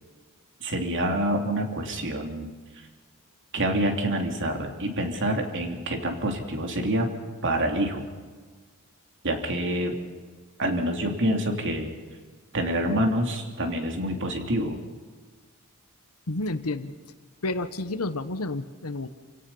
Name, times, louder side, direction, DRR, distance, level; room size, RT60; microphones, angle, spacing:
voice 1, 0.6-2.5 3.5-7.1 7.4-8.1 9.2-10.0 10.6-11.9 12.5-14.8, right 1 dB, 60° right, 3 dB, 2.8 m, -27 dB
voice 2, 16.3-16.9 17.4-19.1, left 2 dB, 75° left, 11 dB, 1.2 m, -30 dB
27.5 x 17.0 x 5.5 m, 1.5 s
head